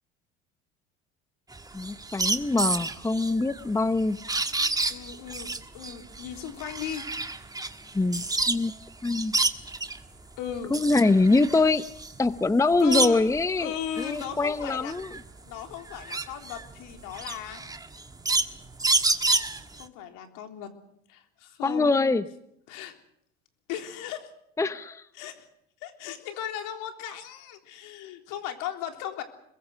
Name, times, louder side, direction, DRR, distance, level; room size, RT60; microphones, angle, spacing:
sound 1, 1.5-8.7 9.0-10.0 10.5-13.4 13.9-19.8, right 3 dB, 10° right, 1.6 m, -29 dB
voice 1, 1.7-4.2 7.9-8.7 9.0-9.3 10.7-11.8 12.2-15.2 21.6-22.2 24.6-25.1, left 3 dB, 10° left, 13 dB, 0.8 m, -24 dB
voice 2, 4.9-7.0 10.4-10.8 12.8-13.3 13.6-14.9 15.4-17.6 19.8-20.7 21.1-22.2 22.7-22.9 23.7-24.3 25.1-25.5 25.8-29.2, left 10 dB, 65° left, 5 dB, 3.6 m, -36 dB
26.5 x 22.0 x 6.4 m, 0.77 s
hypercardioid pair, 85°, 34 cm